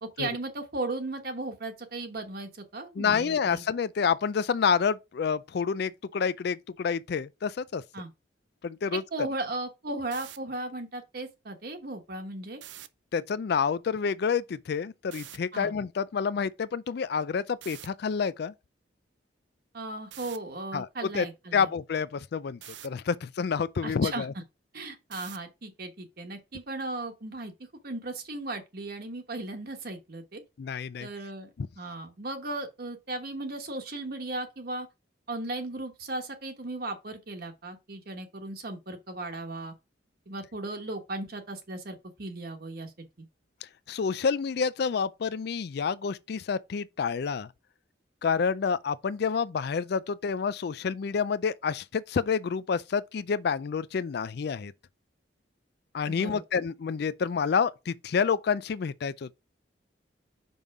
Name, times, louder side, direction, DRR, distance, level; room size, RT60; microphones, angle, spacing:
voice 1, 0.0-3.6 7.9-8.1 9.1-12.6 15.5-15.7 19.7-21.7 23.8-24.3 24.7-30.4 31.0-31.5 31.8-34.9 35.3-39.7 40.3-43.1 56.1-56.4, right 2 dB, 55° right, 1.2 m, -36 dB
voice 2, 3.0-7.8 8.6-9.0 13.1-18.5 20.7-20.9 21.1-21.2 21.5-24.3 30.6-31.1 31.6-31.7 43.6-47.5 48.2-54.7 55.9-59.3, left 6 dB, 60° left, 0.4 m, -28 dB
sound 1, 10.0-10.4 12.5-12.9 15.1-15.4 17.6-17.9 20.1-20.4 22.6-22.9 25.1-25.5, right 12 dB, 75° right, 0.6 m, -44 dB
5.4 x 5.4 x 4.7 m
head